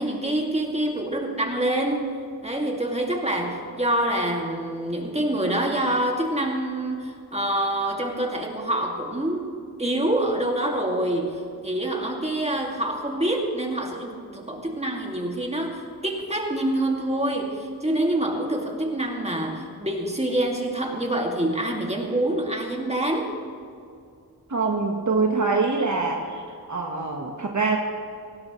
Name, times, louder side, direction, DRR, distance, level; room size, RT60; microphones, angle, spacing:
voice 1, 0.0-2.1 2.4-9.5 9.8-23.3, right 1 dB, 15° right, 0 dB, 2.2 m, -26 dB
voice 2, 24.5-26.4 26.7-27.8, right 4 dB, 55° right, 0 dB, 1.3 m, -24 dB
17.5 x 17.5 x 3.1 m, 2.4 s
wide cardioid pair, 65°, 36 cm